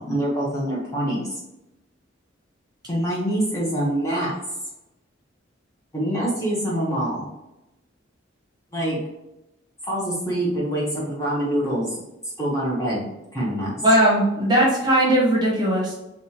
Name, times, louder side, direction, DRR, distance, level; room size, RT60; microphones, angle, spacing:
voice 1, 0.0-1.3 2.9-4.3 5.9-7.2 8.7-9.0 9.8-12.0 12.4-13.8, right 1 dB, 15° left, -5 dB, 0.8 m, -25 dB
voice 2, 13.8-15.9, right 1 dB, 20° right, -4 dB, 1.0 m, -18 dB
4.8 x 2.3 x 2.7 m, 0.93 s
head